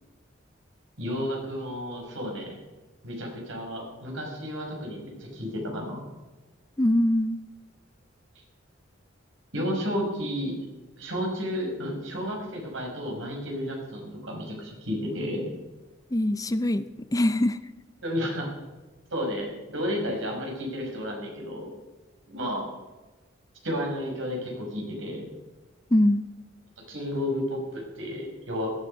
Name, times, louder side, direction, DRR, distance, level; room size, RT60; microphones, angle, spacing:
voice 1, 1.0-2.5 3.0-6.0 9.5-10.6 11.0-15.5 18.0-18.5 19.1-21.7 22.3-22.7 23.6-25.3 26.9-28.7, equal, 70° right, 0 dB, 5.3 m, -32 dB
voice 2, 6.8-7.4 16.1-17.6 25.9-26.3, left 1 dB, 20° left, 13 dB, 0.5 m, -23 dB
17.5 x 12.5 x 5.4 m, 1.2 s
head